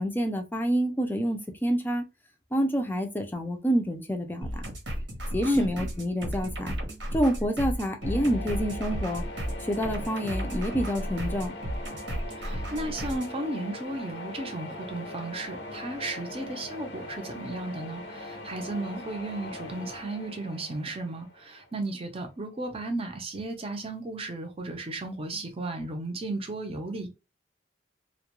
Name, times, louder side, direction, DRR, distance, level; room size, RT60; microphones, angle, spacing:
voice 1, 0.0-2.1 2.5-4.7 5.3-6.8 7.1-9.2 9.7-11.5, equal, 10° left, 0.5 m, -28 dB
sound 1, 4.4-13.3, equal, 90° right, 0.9 m, -34 dB
sound 2, 8.0-21.8, left 1 dB, 70° left, 0.6 m, -41 dB
voice 2, 12.3-27.1, right 1 dB, 30° right, 0.6 m, -34 dB
2.3 x 2.2 x 2.9 m
head